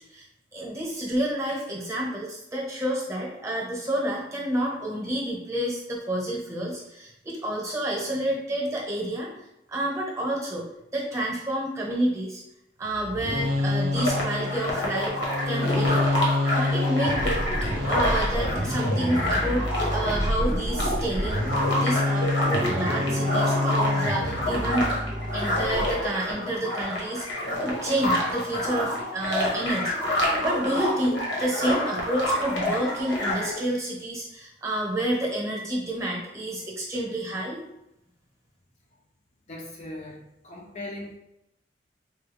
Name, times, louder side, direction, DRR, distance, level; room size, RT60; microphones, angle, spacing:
voice 1, 0.5-9.3 9.7-10.7 10.9-12.4 12.8-15.2 15.5-16.0 16.5-17.3 17.6-24.9 25.3-27.3 27.6-37.6, right 1 dB, 15° right, -3 dB, 0.9 m, -29 dB
sound 1, 12.9-26.0, left 1 dB, 50° right, 0.6 m, -27 dB
sound 2, 13.9-33.6, left 1 dB, 80° left, 1.1 m, -28 dB
voice 2, 39.5-41.2, left 1 dB, 35° left, -1 dB, 0.5 m, -39 dB
4.4 x 2.3 x 3.4 m, 0.86 s
head